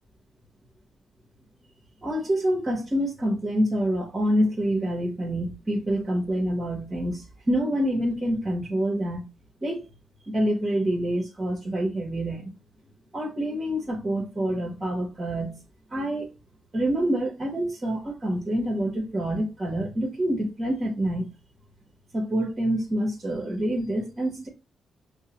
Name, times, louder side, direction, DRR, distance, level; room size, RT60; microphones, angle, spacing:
voice 1, 2.0-9.2 9.6-9.8 10.3-12.5 13.1-15.6 15.9-16.3 16.7-21.3 22.1-24.5, right 1 dB, 35° right, 1.2 m, -27 dB
5.3 x 2.1 x 2.9 m
supercardioid pair, 60°, 0 cm